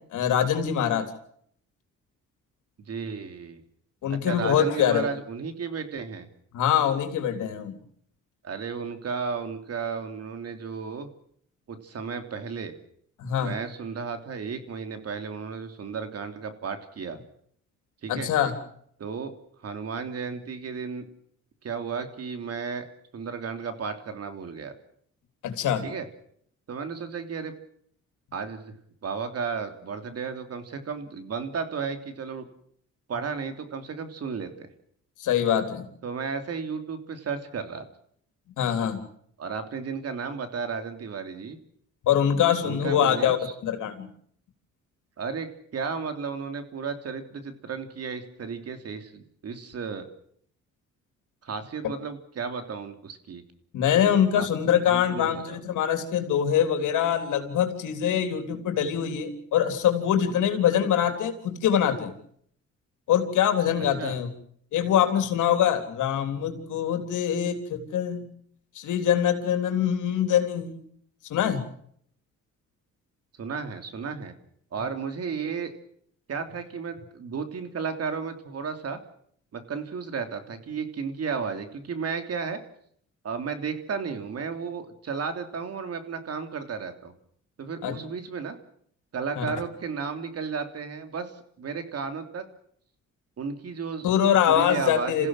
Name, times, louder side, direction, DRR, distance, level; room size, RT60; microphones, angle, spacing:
voice 1, 0.1-1.1 4.0-5.1 6.5-7.8 13.2-13.5 18.1-18.5 25.4-25.8 35.2-35.9 38.6-39.0 42.0-43.4 43.6-44.1 53.7-62.1 63.1-64.3 64.7-68.2 68.8-70.8 71.3-71.6 87.8-87.9 89.4-89.5 94.0-95.3, left 9 dB, 80° left, 7 dB, 3.5 m, -24 dB
voice 2, 2.8-3.6 4.1-6.3 8.4-11.1 11.7-12.7 13.4-17.2 18.0-18.3 19.0-19.3 19.6-21.0 21.6-22.9 23.1-24.7 25.8-26.1 26.7-27.5 28.3-28.7 29.0-32.5 33.1-34.7 36.0-37.9 39.4-41.6 42.6-43.5 45.2-50.1 51.4-53.4 54.3-54.5 54.8-55.6 64.0-64.2 73.3-74.3 74.7-75.7 76.3-79.0 79.5-82.6 83.2-87.1 87.6-88.6 89.1-92.5 93.4-94.1 94.5-95.3, right 5 dB, 55° right, 8 dB, 3.2 m, -33 dB
27.5 x 16.0 x 7.6 m, 0.66 s
cardioid pair, 90°, 30 cm